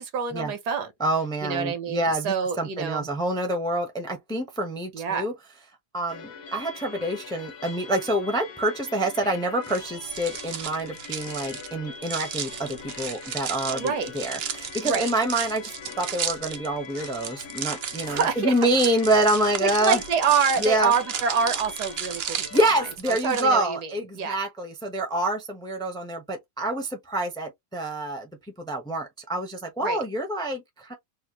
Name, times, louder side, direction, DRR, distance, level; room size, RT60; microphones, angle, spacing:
voice 1, 0.0-0.9 1.4-3.1 4.9-5.3 13.7-14.1 14.8-15.1 18.0-18.5 19.6-24.4 29.8-30.0, right 6 dB, 80° right, 1.6 m, -27 dB
voice 2, 1.0-5.3 5.9-20.0 20.6-20.9 22.5-28.3 28.6-30.9, right 1 dB, 5° left, 0.6 m, -27 dB
sound 1, 6.1-23.0, left 6 dB, 65° left, 1.1 m, -42 dB
sound 2, 9.6-23.4, right 8 dB, 60° right, 0.6 m, -34 dB
4.3 x 2.1 x 2.9 m
omnidirectional pair, 1.7 m